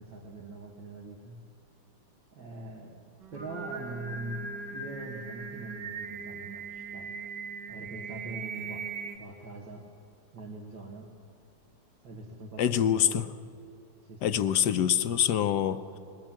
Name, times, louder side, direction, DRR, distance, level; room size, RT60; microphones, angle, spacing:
voice 1, 0.0-1.4 2.3-7.1 7.7-9.9 10.3-11.1 12.0-13.3 14.0-14.4, right 2 dB, 80° right, -3 dB, 2.7 m, -43 dB
Singing, 3.2-9.2, right 5 dB, 65° right, 1.9 m, -39 dB
voice 2, 12.6-13.2 14.2-16.0, left 10 dB, 70° left, 12 dB, 1.3 m, -25 dB
21.0 x 18.5 x 7.6 m, 2.5 s
omnidirectional pair, 2.1 m